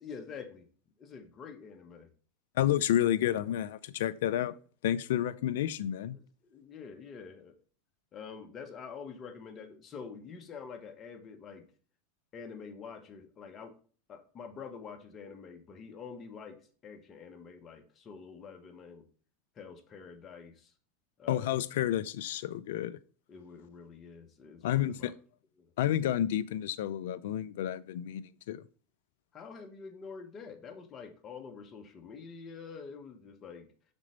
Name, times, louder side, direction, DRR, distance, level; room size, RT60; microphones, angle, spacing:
voice 1, 0.0-0.7 1.0-2.1 6.4-7.6 8.1-11.6 12.3-13.7 14.1-19.1 19.5-20.7 21.2-21.5 23.3-25.1 25.6-25.7 29.3-33.7, left 5 dB, 35° left, 1.4 m, -46 dB
voice 2, 2.6-4.5 4.8-6.2 21.3-23.0 24.6-25.1 25.8-28.6, left 11 dB, 65° left, 0.5 m, -30 dB
5.9 x 4.5 x 5.3 m
hypercardioid pair, 90°, 0 cm